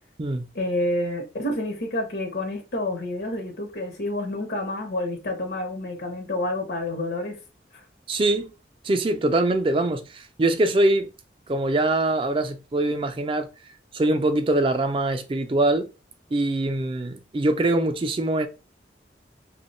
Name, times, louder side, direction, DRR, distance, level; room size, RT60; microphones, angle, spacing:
voice 1, 0.5-7.3, left 1 dB, 75° left, 0.8 m, -28 dB
voice 2, 8.1-8.5 8.8-11.1 11.5-13.5 13.9-15.9 16.3-18.5, right 2 dB, 30° right, 0.3 m, -23 dB
3.0 x 2.2 x 4.0 m
head